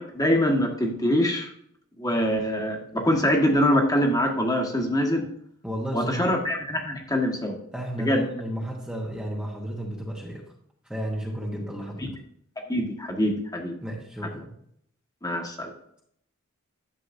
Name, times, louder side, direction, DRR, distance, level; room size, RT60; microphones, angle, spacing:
voice 1, 0.0-1.5 2.0-5.3 5.9-7.6 8.0-8.2 12.7-13.7 15.2-15.7, equal, 20° left, 0 dB, 1.5 m, -24 dB
voice 2, 5.6-6.4 7.7-10.5 10.8-12.2 13.8-14.6, right 1 dB, 5° right, -3 dB, 1.2 m, -33 dB
11.5 x 7.6 x 2.7 m, 0.70 s
head